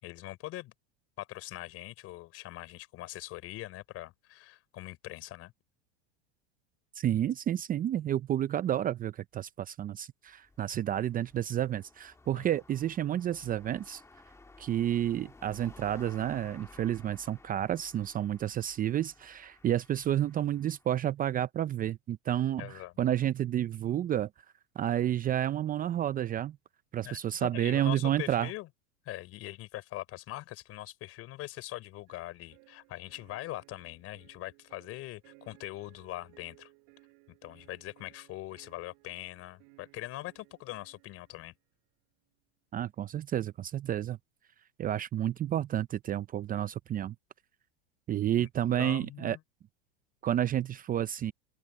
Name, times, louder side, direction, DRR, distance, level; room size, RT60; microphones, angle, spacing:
voice 1, 0.0-0.7 1.2-5.5 12.3-12.5 22.6-22.9 27.0-28.7 29.1-36.7 37.3-41.5 48.3-48.5 48.8-49.4, left 16 dB, 45° left, 4.1 m, -42 dB
voice 2, 6.9-14.0 14.6-24.3 24.8-26.6 26.9-28.5 42.7-44.2 44.8-47.1 48.1-49.4 50.2-51.3, right 11 dB, 25° right, 0.7 m, -30 dB
sound 1, 10.3-20.9, left 3 dB, 10° left, 1.7 m, -56 dB
sound 2, 32.1-41.6, right 40 dB or more, 60° right, 6.5 m, -61 dB
open air
supercardioid pair, 115°, 32 cm